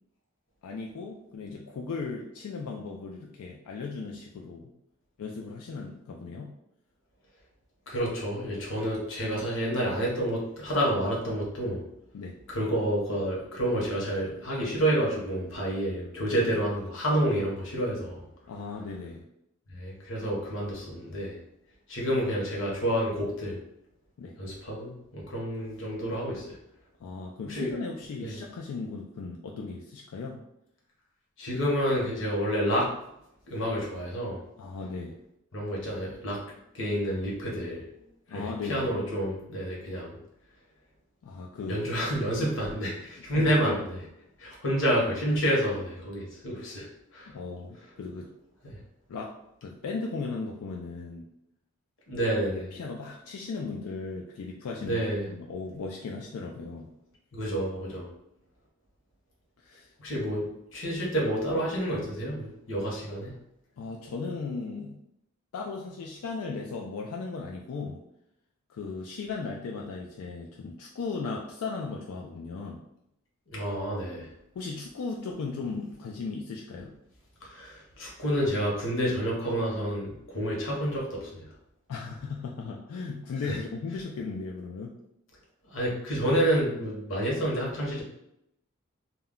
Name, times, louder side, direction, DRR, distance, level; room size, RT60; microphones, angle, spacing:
voice 1, 0.6-4.7 5.2-6.5 12.1-12.4 18.5-19.2 24.2-24.4 27.0-30.4 34.6-35.2 38.3-38.9 41.2-41.9 43.3-43.8 47.3-48.3 49.1-51.3 52.7-56.9 59.6-59.9 63.8-65.0 65.5-68.0 68.7-72.8 74.6-76.9 81.9-85.0, left 4 dB, 90° left, -1 dB, 0.3 m, -37 dB
voice 2, 7.9-11.8 12.5-18.3 19.7-21.4 21.9-23.6 24.4-26.6 27.5-27.7 28.2-28.4 31.4-32.9 33.5-34.4 35.5-37.8 38.3-40.2 41.7-43.8 44.4-46.9 47.1-47.3 48.6-48.8 52.1-52.7 54.8-55.3 57.3-58.1 60.0-63.4 73.5-74.3 77.4-81.5 83.4-83.6 85.7-88.0, equal, 60° left, -3 dB, 0.8 m, -29 dB
2.2 x 2.1 x 3.6 m, 0.80 s
head